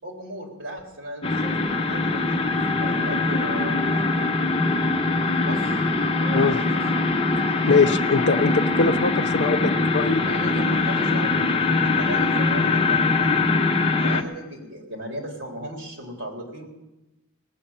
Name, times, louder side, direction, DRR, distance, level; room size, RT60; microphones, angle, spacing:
voice 1, 0.0-2.4 2.7-4.3 5.1-5.9 6.2-6.8 10.3-13.4 13.9-16.7, right 1 dB, 70° right, 1 dB, 3.7 m, -37 dB
sound 1, 1.2-14.2, left 3 dB, 30° left, 0.8 m, -22 dB
voice 2, 7.5-10.2, left 4 dB, 55° left, 8 dB, 0.7 m, -22 dB
18.5 x 7.0 x 8.7 m, 0.99 s
head